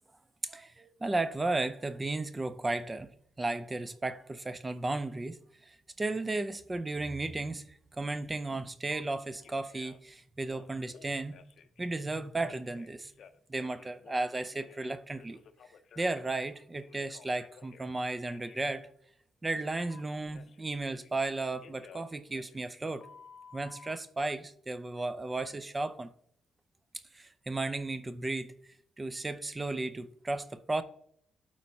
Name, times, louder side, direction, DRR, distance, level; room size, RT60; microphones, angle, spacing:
voice 1, 0.4-3.1 3.4-11.4 11.8-13.1 13.5-15.4 16.0-18.9 19.4-23.1 23.5-26.1 27.1-28.5 29.0-30.8, right 2 dB, 20° right, 0.5 m, -34 dB
Telephone, 8.9-9.0 9.4-10.1 10.4-11.8 12.4-14.9 15.2-17.9 18.3-18.6 19.9-21.3 21.6-24.0, left 6 dB, 60° left, 0.6 m, -55 dB
12.5 x 4.3 x 2.8 m
cardioid pair, 90°, 0 cm